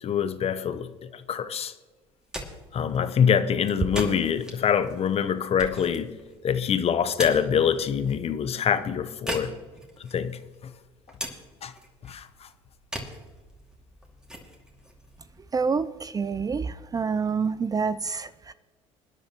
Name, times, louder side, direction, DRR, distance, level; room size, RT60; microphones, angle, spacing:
voice 1, 0.0-1.7 2.7-6.1 6.4-9.5 10.1-10.4 11.6-11.7 12.0-12.3, left 7 dB, 40° left, 0.9 m, -25 dB
sound 1, 2.0-16.0, equal, 5° right, 2.4 m, -41 dB
voice 2, 15.5-18.5, right 5 dB, 25° right, 0.5 m, -27 dB
23.0 x 10.0 x 3.1 m
hypercardioid pair, 70°, 16 cm